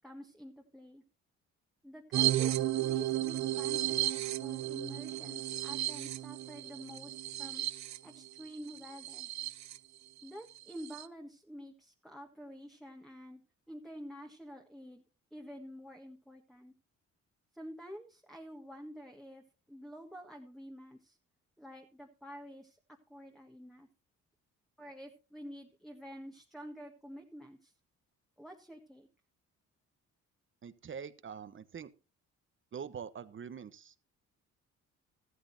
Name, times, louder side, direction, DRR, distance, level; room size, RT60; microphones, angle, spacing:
voice 1, 0.0-1.0 1.8-7.6 8.0-9.3 10.2-13.4 13.7-15.0 15.3-16.7 17.5-21.2 21.6-22.8 23.1-23.9 24.8-27.7 28.4-29.1, equal, ahead, 2 dB, 1.5 m, -49 dB
sound 1, 2.1-9.8 10.2-10.3 10.6-11.1, right 13 dB, 65° right, 0.7 m, -34 dB
voice 2, 30.6-31.9 32.7-34.0, right 7 dB, 40° right, 14 dB, 1.0 m, -44 dB
14.0 x 13.0 x 2.7 m, 0.31 s
cardioid pair, 90°, 30 cm